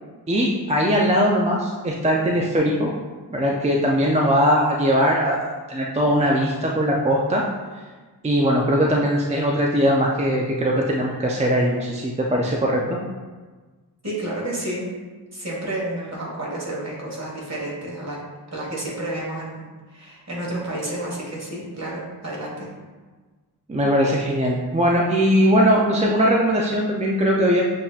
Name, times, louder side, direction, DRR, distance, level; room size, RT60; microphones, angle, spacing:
voice 1, 0.3-2.9 3.3-7.4 7.7-7.8 8.2-13.0 23.7-27.6, equal, 20° right, -2 dB, 0.4 m, -20 dB
voice 2, 14.0-14.9 15.3-18.2 18.5-19.6 19.9-22.7, right 1 dB, 40° right, -4 dB, 1.5 m, -30 dB
7.4 x 2.7 x 2.4 m, 1.4 s
wide cardioid pair, 95°, 41 cm